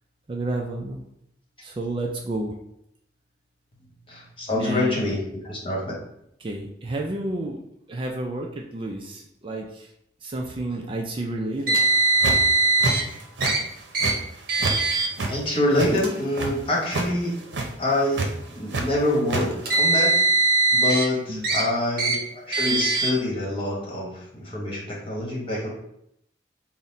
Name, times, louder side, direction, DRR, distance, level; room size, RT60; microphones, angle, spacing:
voice 1, 0.3-1.0 1.6-2.6 4.6-5.1 6.4-7.6 7.9-9.9 10.2-11.8 21.3-21.7, right 1 dB, 30° right, 0 dB, 0.3 m, -30 dB
voice 2, 4.1-5.8 15.2-17.3 17.8-20.1 20.7-22.1 22.5-25.7, left 1 dB, 30° left, -4 dB, 1.2 m, -26 dB
Car, 11.7-13.0 13.4-13.6 13.9-14.1 14.5-15.1 15.9-16.1 17.0-17.1 19.4-21.0 21.4-21.6 22.0-22.2 22.5-23.1, right 3 dB, 55° right, 0.8 m, -21 dB
sound 1, 11.9-12.5 12.8-13.5 13.8-14.8 15.0-16.5 16.8-17.1 17.4-17.7 18.1-18.8 19.1-19.4, right 2 dB, 85° right, 0.6 m, -27 dB
3.9 x 2.1 x 4.0 m, 0.75 s
head